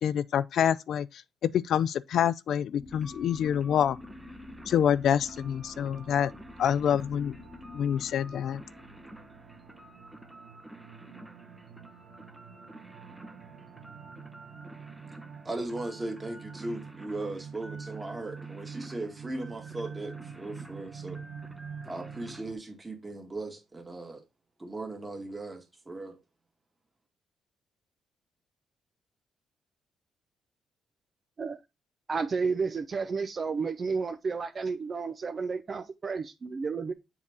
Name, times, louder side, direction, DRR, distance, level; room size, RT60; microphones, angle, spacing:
voice 1, 0.0-4.0 4.7-6.3 6.6-7.3 7.7-8.6, left 9 dB, 70° left, 0.3 m, -27 dB
sound 1, 2.8-10.7, left 2 dB, 20° left, 1.1 m, -49 dB
sound 2, 2.9-22.4, right 1 dB, 5° right, 0.8 m, -52 dB
sound 3, 5.0-22.5, right 6 dB, 65° right, 1.2 m, -47 dB
voice 2, 15.4-21.2 21.9-24.2 24.6-26.2, right 2 dB, 20° right, 1.9 m, -38 dB
voice 3, 32.1-36.9, right 5 dB, 40° right, 0.6 m, -31 dB
7.3 x 4.1 x 3.6 m
cardioid pair, 100°, 0 cm